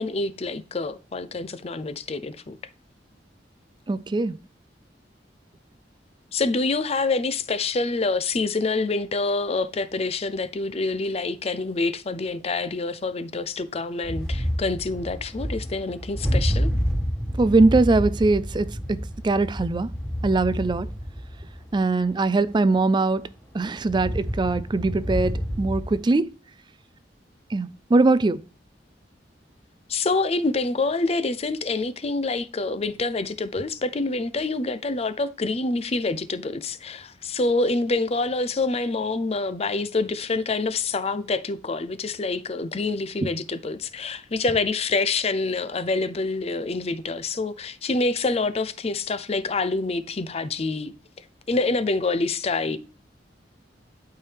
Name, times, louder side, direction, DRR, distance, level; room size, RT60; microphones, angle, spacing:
voice 1, 0.0-2.6 6.3-16.7 29.9-50.9 51.5-52.8, left 3 dB, 35° left, 0.5 m, -26 dB
voice 2, 3.9-4.4 17.4-19.9 20.2-20.9 21.7-23.3 23.5-26.3 27.5-28.4 43.2-43.3, right 3 dB, 25° right, 0.3 m, -21 dB
sound 1, 14.0-22.7 23.2-23.3 23.5-26.1, equal, 5° left, 2.6 m, -29 dB
11.5 x 4.7 x 3.4 m
head